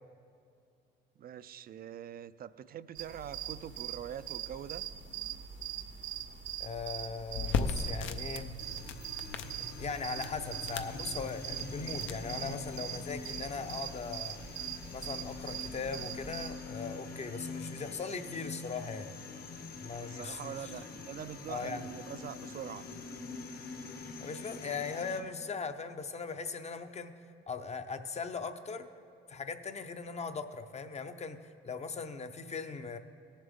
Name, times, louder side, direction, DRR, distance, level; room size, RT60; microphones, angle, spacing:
voice 1, 1.2-4.8 20.0-22.9, right 9 dB, 50° right, 16 dB, 0.4 m, -44 dB
sound 1, 3.0-16.5, right 10 dB, 75° right, 1.0 m, -42 dB
voice 2, 6.6-8.5 9.7-14.4 14.9-19.1 19.8-20.7 21.5-21.9 24.2-27.1 27.5-28.9 29.3-33.0, left 5 dB, 35° left, 9 dB, 0.6 m, -39 dB
sound 2, 7.3-12.8, left 5 dB, 75° left, 0.6 m, -39 dB
sound 3, 8.6-25.2, left 4 dB, 50° left, 1.0 m, -45 dB
18.0 x 7.3 x 3.5 m, 2.5 s
cardioid pair, 90°, 20 cm